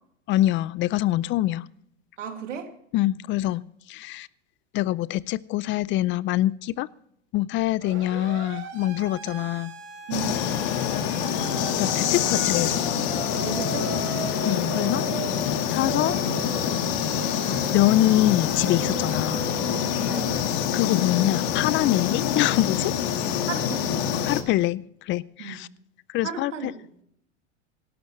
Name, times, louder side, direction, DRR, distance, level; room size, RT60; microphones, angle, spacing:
voice 1, 0.3-1.7 2.9-3.6 3.9-4.3 4.7-6.9 7.3-9.7 11.8-12.9 14.4-15.0 15.7-16.2 16.5-16.8 17.7-19.5 20.7-22.9 24.3-25.7 26.1-26.7, left 15 dB, 35° left, 22 dB, 0.4 m, -24 dB
voice 2, 2.2-2.7 10.1-10.5 13.4-14.3 20.1-20.5 23.5-24.0 25.4-25.6 26.2-26.7, right 7 dB, 90° right, 5 dB, 2.4 m, -35 dB
Siren, 7.8-20.2, right 6 dB, 45° right, 4.2 m, -37 dB
sound 1, 10.1-24.4, left 9 dB, 55° left, 1.7 m, -26 dB
17.5 x 12.0 x 3.1 m, 0.71 s
hypercardioid pair, 110°, 36 cm